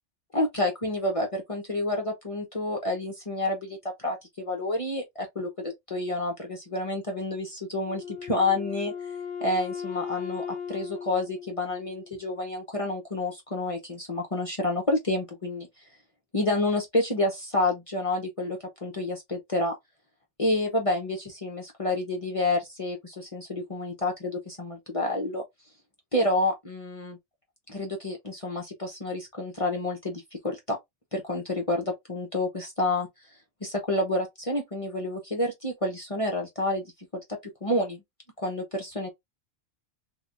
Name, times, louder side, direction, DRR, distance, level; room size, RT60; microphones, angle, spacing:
voice 1, 0.3-8.9 9.4-15.7 16.3-19.7 20.4-25.4 26.1-27.2 27.7-30.8 31.1-33.1 33.6-36.8 37.3-38.0 38.4-39.1, left 2 dB, 30° left, 0.9 m, -29 dB
Wind instrument woodwind instrument, 7.9-12.3, left 7 dB, 75° left, 0.9 m, -37 dB
3.4 x 3.3 x 2.5 m
omnidirectional pair, 1.2 m